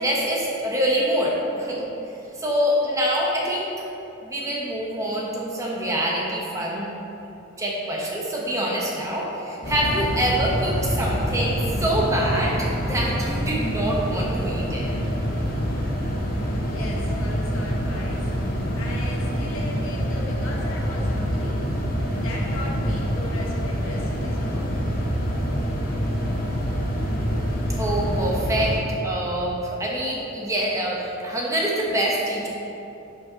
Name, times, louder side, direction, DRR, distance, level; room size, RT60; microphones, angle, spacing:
voice 1, 0.0-1.9 2.3-3.7 4.2-6.9 7.6-14.9 27.8-32.5, right 1 dB, 15° right, -3 dB, 0.9 m, -25 dB
sound 1, 9.6-28.8, equal, 45° left, 1.1 m, -26 dB
voice 2, 15.6-16.0 16.3-18.3 18.7-21.6 22.1-25.2, left 1 dB, 75° left, -3 dB, 1.1 m, -38 dB
11.5 x 5.3 x 2.9 m, 3.0 s
head